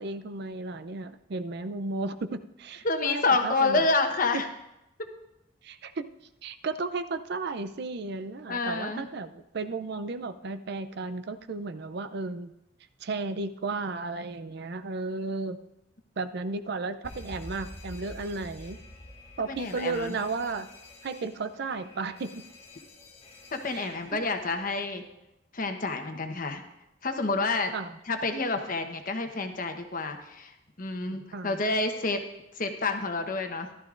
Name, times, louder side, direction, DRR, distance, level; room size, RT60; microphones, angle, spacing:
voice 1, 0.0-3.8 4.3-4.4 5.6-6.1 6.4-12.5 13.0-15.6 16.2-18.8 19.4-20.7 21.0-22.5 23.7-24.2 27.7-27.9 31.3-31.6, right 3 dB, 60° right, 11 dB, 0.5 m, -34 dB
voice 2, 2.8-4.5 8.5-9.1 19.5-20.2 23.5-25.0 25.5-26.6 27.0-27.7 28.1-32.2 32.5-33.7, left 3 dB, 45° left, 6 dB, 1.0 m, -28 dB
Alarm, 17.0-24.7, left 1 dB, 30° left, 1.8 m, -48 dB
14.5 x 12.5 x 2.5 m, 0.88 s
head